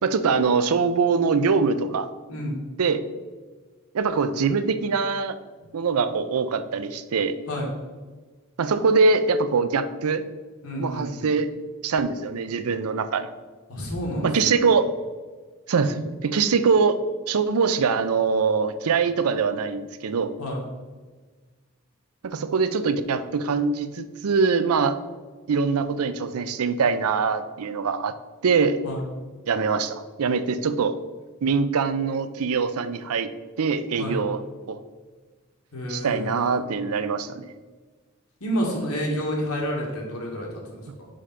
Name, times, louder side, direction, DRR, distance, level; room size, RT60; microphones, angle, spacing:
voice 1, 0.0-2.1 2.8-3.0 3.9-5.4 5.7-7.4 8.6-10.2 10.8-11.5 11.8-13.3 14.2-14.9 15.7-17.0 17.3-20.3 22.2-25.0 25.5-28.1 28.4-28.8 29.5-31.0 31.4-33.3 33.6-34.4 34.7-34.8 35.9-37.5, right 5 dB, 90° right, 12 dB, 0.5 m, -23 dB
voice 2, 10.6-11.3 13.7-14.5 20.4-20.6 28.8-29.0 34.0-34.2 35.7-36.6 38.4-41.1, equal, 85° left, -2 dB, 1.8 m, -30 dB
5.1 x 5.0 x 5.6 m, 1.4 s
head